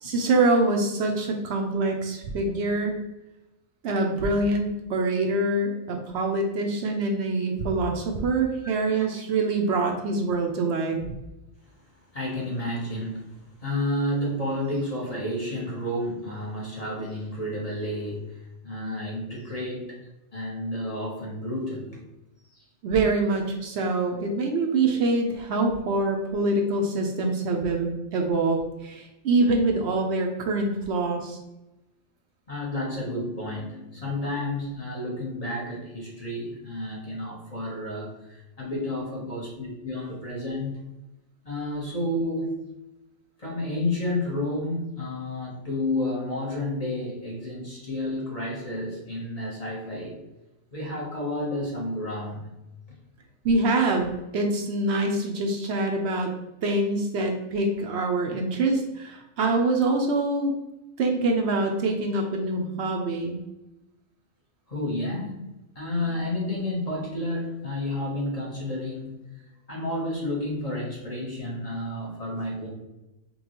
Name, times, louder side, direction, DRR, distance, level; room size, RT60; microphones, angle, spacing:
voice 1, 0.0-3.0 3.8-11.1 22.8-31.4 53.4-56.3 56.6-60.5 61.0-63.4, right 2 dB, 65° right, 2 dB, 0.8 m, -25 dB
voice 2, 8.6-9.1 12.1-20.0 20.3-22.0 22.5-22.6 32.5-40.8 41.4-42.6 43.4-50.2 50.7-52.5 64.7-72.7, left 1 dB, 35° left, -3 dB, 0.9 m, -31 dB
5.3 x 2.2 x 2.9 m, 0.96 s
omnidirectional pair, 1.3 m